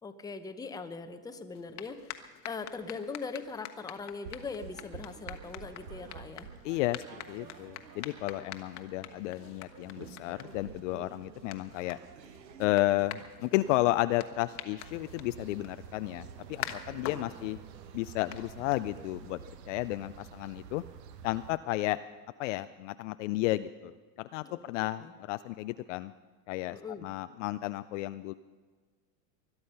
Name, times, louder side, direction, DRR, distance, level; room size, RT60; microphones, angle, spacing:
voice 1, 0.0-6.5 8.4-8.5 17.0-17.3 24.4-25.1 26.7-27.1, left 4 dB, 10° left, 8 dB, 0.7 m, -41 dB
sound 1, 1.5-19.3, left 11 dB, 35° left, 1.2 m, -47 dB
sound 2, 4.2-19.6, right 6 dB, 90° right, 1.4 m, -51 dB
voice 2, 6.6-12.0 12.6-17.6 17.9-19.4 19.7-20.8 21.2-22.0 22.4-23.9 24.2-26.1 26.5-28.3, left 17 dB, 50° left, 12 dB, 0.5 m, -32 dB
sound 3, 14.8-21.6, right 8 dB, 70° right, 1.3 m, -49 dB
21.0 x 11.5 x 5.6 m, 1.4 s
hypercardioid pair, 125°, 49 cm